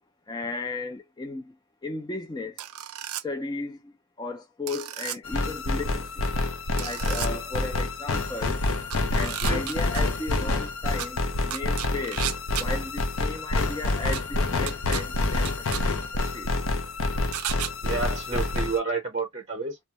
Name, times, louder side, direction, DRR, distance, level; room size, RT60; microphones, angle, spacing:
voice 1, 0.3-2.6 3.2-6.3 6.7-8.6 9.1-12.3 12.6-16.0 16.3-16.5, left 3 dB, 20° left, 0.3 m, -35 dB
sound 1, 2.6-3.2 4.7-5.2 6.8-7.3 8.9-10.0 11.0-11.1 11.5-12.7 14.1-14.2 14.7-15.0 15.5-15.8 17.3-17.7, right 12 dB, 80° right, 0.4 m, -33 dB
sound 2, 5.2-18.8, left 2 dB, 70° left, 0.5 m, -27 dB
voice 2, 17.8-19.8, right 4 dB, 35° right, 0.6 m, -30 dB
2.2 x 2.0 x 2.8 m
head